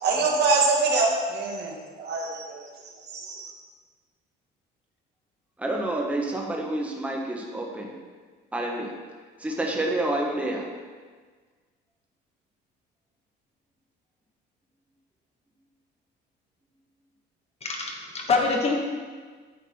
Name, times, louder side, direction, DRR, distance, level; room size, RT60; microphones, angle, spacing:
voice 1, 0.0-2.6 3.1-3.5, right 3 dB, 60° right, 0 dB, 1.7 m, -24 dB
voice 2, 5.6-8.0 8.5-8.9 9.4-10.7, right 1 dB, 5° right, -1 dB, 1.2 m, -28 dB
voice 3, 17.6-18.8, left 4 dB, 35° left, 1 dB, 1.4 m, -25 dB
9.4 x 7.1 x 4.3 m, 1.5 s
cardioid pair, 135°, 19 cm